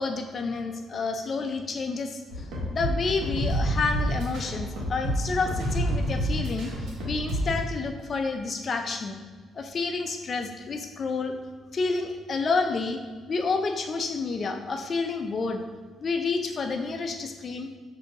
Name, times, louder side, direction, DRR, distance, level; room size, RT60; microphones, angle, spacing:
voice 1, 0.0-2.2 2.7-9.2 9.5-11.3 11.7-13.0 13.3-15.6 16.0-17.7, left 4 dB, 45° left, 6 dB, 0.4 m, -29 dB
sound 1, 2.3-7.6, right 1 dB, 80° right, 1.0 m, -28 dB
6.1 x 2.7 x 2.5 m, 1.5 s
cardioid pair, 90°, 0 cm